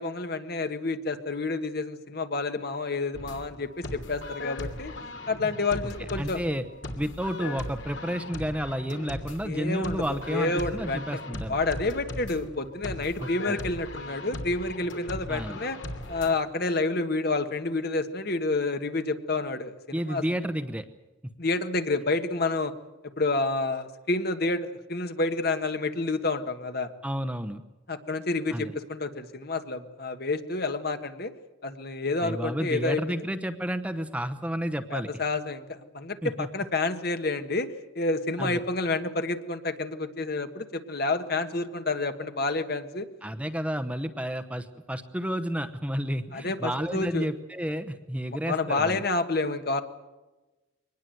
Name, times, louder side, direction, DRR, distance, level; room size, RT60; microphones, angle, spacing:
voice 1, 0.0-4.9 5.3-6.4 9.4-11.2 11.5-15.8 16.1-20.2 21.4-22.7 23.2-26.9 27.9-31.3 31.6-33.2 34.9-37.7 37.9-43.1 46.3-47.3 48.5-49.8, left 3 dB, 50° left, 8 dB, 1.5 m, -29 dB
sound 1, 3.1-16.4, left 1 dB, 70° left, 2.9 m, -38 dB
voice 2, 6.2-6.6 7.0-11.6 13.2-13.6 15.3-15.6 19.9-20.8 27.0-27.6 28.5-28.7 32.2-35.1 36.2-36.5 38.4-38.6 43.2-49.0, equal, 5° right, 10 dB, 0.9 m, -31 dB
23.5 x 19.5 x 7.9 m, 1.1 s
head